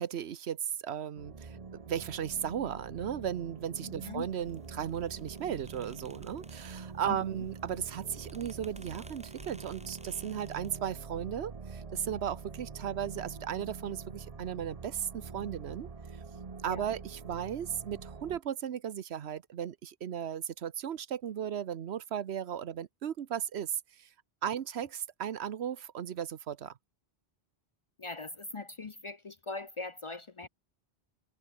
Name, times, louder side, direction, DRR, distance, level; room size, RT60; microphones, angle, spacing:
voice 1, 0.0-1.6 1.9-15.9 16.6-24.1 24.4-26.7, right 9 dB, 85° right, 1.1 m, -36 dB
sound 1, 1.1-18.4, right 4 dB, 35° right, 1.1 m, -45 dB
voice 2, 3.8-4.3 7.1-7.2 16.7-16.9 28.0-30.5, left 3 dB, 40° left, 0.5 m, -41 dB
sound 2, 4.3-10.8, right 1 dB, 10° right, 0.6 m, -56 dB
omnidirectional pair, 1.1 m